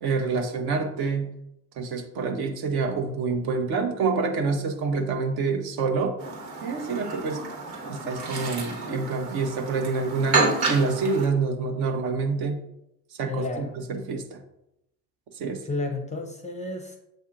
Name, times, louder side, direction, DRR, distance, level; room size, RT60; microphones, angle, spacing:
voice 1, 0.0-1.3 1.8-6.1 6.6-7.4 7.8-12.6 13.1-14.4 15.3-15.6, right 4 dB, 50° right, 4 dB, 0.8 m, -27 dB
Chirp tweet, 6.2-11.3, right 3 dB, 70° right, 1.4 m, -29 dB
voice 2, 13.3-13.7 15.6-17.0, left 3 dB, 15° left, 3 dB, 0.6 m, -31 dB
7.5 x 2.7 x 2.4 m, 0.83 s
figure-of-eight pair, 55°, 47 cm